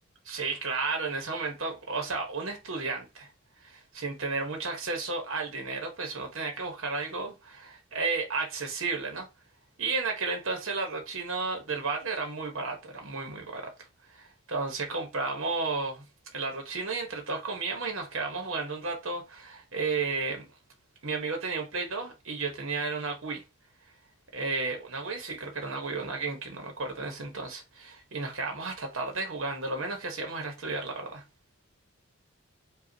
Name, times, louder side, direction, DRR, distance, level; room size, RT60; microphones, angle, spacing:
voice 1, 0.2-3.3 3.6-9.3 9.8-13.7 14.1-16.0 16.3-20.4 21.0-23.4 24.3-31.2, right 3 dB, 70° right, 1.0 m, -33 dB
5.1 x 2.4 x 2.6 m
head